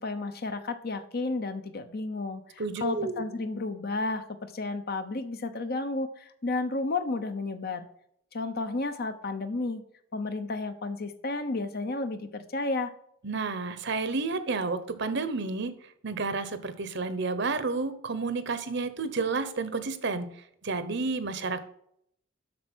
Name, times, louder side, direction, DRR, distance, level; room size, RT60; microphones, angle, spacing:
voice 1, 0.0-7.9 8.3-9.8 10.1-12.9, left 3 dB, 50° left, 9 dB, 0.8 m, -32 dB
voice 2, 2.6-3.2 13.2-15.7 16.0-20.3 20.6-21.6, right 4 dB, 55° right, 12 dB, 0.9 m, -30 dB
7.9 x 6.5 x 6.2 m, 0.72 s
head